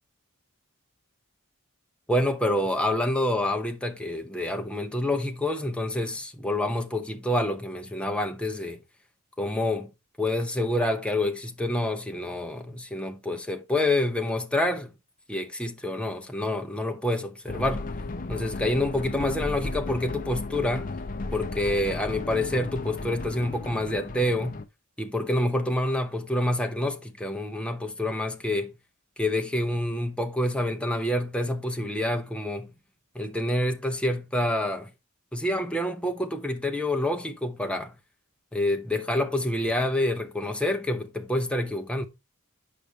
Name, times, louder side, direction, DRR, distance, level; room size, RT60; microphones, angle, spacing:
voice 1, 2.1-8.8 9.4-9.9 10.2-14.9 15.3-17.9 18.3-20.9 21.3-24.6 25.0-28.7 29.2-32.7 33.1-34.9 35.3-37.9 38.5-42.1, left 1 dB, 5° left, 0.8 m, -27 dB
sound 1, 17.5-24.6, left 2 dB, 35° left, 0.5 m, -34 dB
8.6 x 5.3 x 3.2 m
head